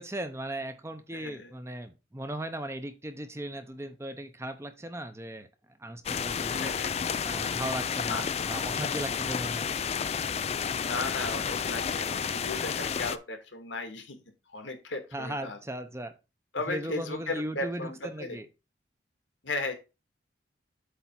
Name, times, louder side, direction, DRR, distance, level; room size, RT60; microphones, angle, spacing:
voice 1, 0.0-5.5 5.8-6.8 7.2-9.7 15.1-16.1 16.7-18.5, right 1 dB, 15° right, 8 dB, 0.7 m, -37 dB
voice 2, 1.1-1.5 6.5-6.9 8.1-8.2 10.7-14.2 14.5-15.6 16.5-18.4 19.4-19.7, left 3 dB, 80° left, 5 dB, 1.9 m, -36 dB
sound 1, 6.1-13.2, left 7 dB, 35° left, 0.4 m, -31 dB
8.0 x 3.5 x 6.0 m, 0.28 s
head